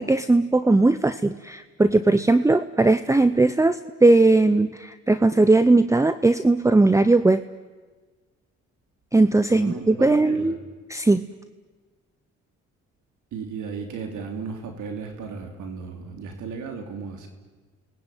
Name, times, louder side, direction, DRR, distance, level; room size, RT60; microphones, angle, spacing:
voice 1, 0.0-7.4 9.1-10.6 10.9-11.3, right 2 dB, 10° right, 12 dB, 0.8 m, -19 dB
voice 2, 9.4-10.5 13.3-17.3, right 5 dB, 80° right, 4 dB, 3.4 m, -35 dB
29.5 x 20.5 x 9.3 m, 1.4 s
cardioid pair, 90°, 30 cm